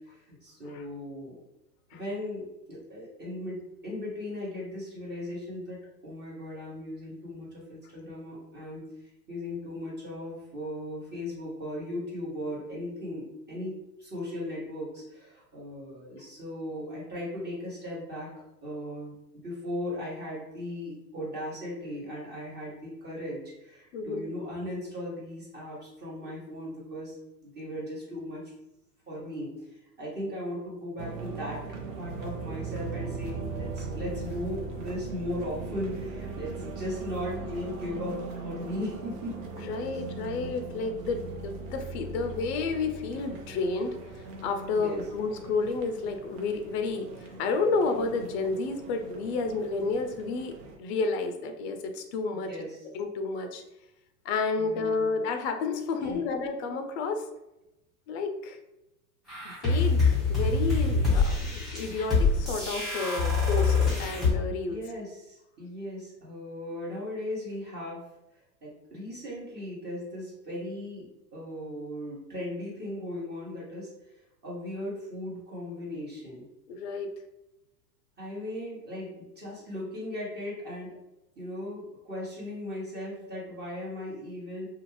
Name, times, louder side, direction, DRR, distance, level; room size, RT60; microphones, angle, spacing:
voice 1, 0.0-1.4 1.9-8.8 9.3-13.7 14.0-18.3 18.6-19.1 19.4-27.2 27.4-28.5 29.1-39.3 44.7-45.0 52.3-52.8 54.6-55.1 56.0-56.3 64.4-68.0 68.6-74.1 74.4-76.5 78.2-79.1 79.4-80.9 81.4-84.7, left 1 dB, 20° right, -6 dB, 1.1 m, -37 dB
voice 2, 23.9-24.3 39.6-52.5 52.9-53.6 54.2-57.2 58.1-58.6 59.4-64.8 76.7-77.1, left 4 dB, 45° left, 6 dB, 0.5 m, -31 dB
sound 1, 31.0-50.8, right 3 dB, 55° right, 0.8 m, -39 dB
sound 2, 59.3-64.3, left 4 dB, ahead, 1.3 m, -25 dB
2.5 x 2.4 x 3.1 m, 0.92 s
hypercardioid pair, 115°, 49 cm